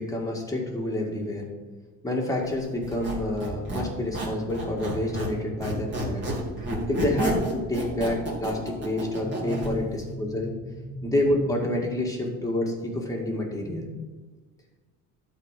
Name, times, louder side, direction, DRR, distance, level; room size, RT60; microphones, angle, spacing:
voice 1, 0.0-1.5 2.0-6.2 6.9-13.9, left 1 dB, 10° left, -1 dB, 2.1 m, -28 dB
Squeak, 2.8-5.4 5.6-9.7, right 1 dB, 35° right, 3.3 m, -30 dB
12.5 x 4.3 x 7.5 m, 1.3 s
cardioid pair, 140°, 34 cm